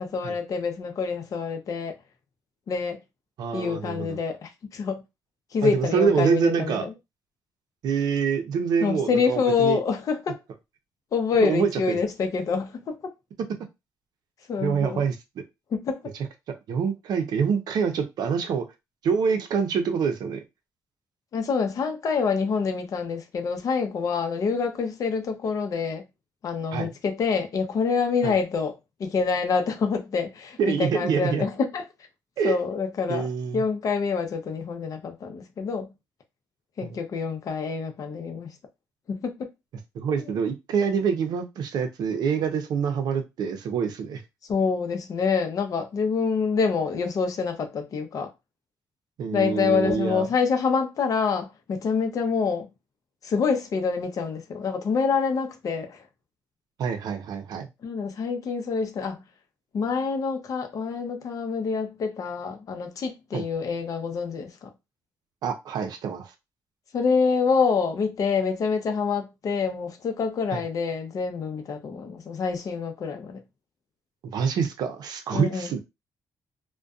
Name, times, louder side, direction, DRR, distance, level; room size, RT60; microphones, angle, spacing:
voice 1, 0.0-1.9 2.7-3.0 3.5-5.0 5.5-6.9 8.8-10.4 11.1-13.0 14.5-15.0 15.7-16.0 21.3-26.0 26.4-31.9 32.4-33.3 33.5-35.9 36.8-38.5 39.1-39.5 40.3-40.4 44.5-48.3 49.3-52.7 53.2-56.0 57.8-59.2 59.7-64.7 66.9-73.4 75.3-75.8, left 5 dB, 55° left, 0.6 m, -26 dB
voice 2, 3.4-4.2 5.6-6.9 7.8-9.8 11.4-12.0 14.6-15.2 16.7-18.7 19.0-20.4 26.7-26.9 28.2-28.3 30.6-31.4 32.4-32.5 33.1-33.6 36.8-37.0 39.9-44.2 49.2-50.3 56.8-57.7 63.3-63.4 65.4-66.3 70.5-70.6 74.2-75.8, right 6 dB, 70° right, 0.5 m, -26 dB
2.6 x 2.2 x 2.3 m
cardioid pair, 105°, 7 cm